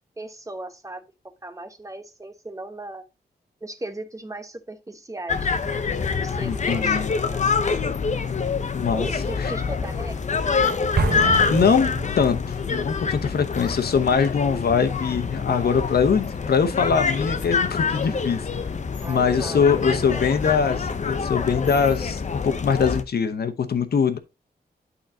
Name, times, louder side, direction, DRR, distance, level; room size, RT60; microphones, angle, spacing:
voice 1, 0.2-1.0 1.4-3.0 3.6-5.5 6.2-7.8 8.9-10.2 19.0-20.3, right 2 dB, 20° right, 0.9 m, -37 dB
sound 1, 5.3-23.0, left 5 dB, 45° left, 0.7 m, -26 dB
voice 2, 6.4-7.1 8.7-9.1 9.4-9.5 11.5-12.4 12.7-18.5 19.1-24.2, left 6 dB, 70° left, 0.9 m, -22 dB
Explosion, 11.0-12.7, right 4 dB, 70° right, 1.2 m, -27 dB
11.5 x 4.0 x 2.8 m
wide cardioid pair, 105°, 17 cm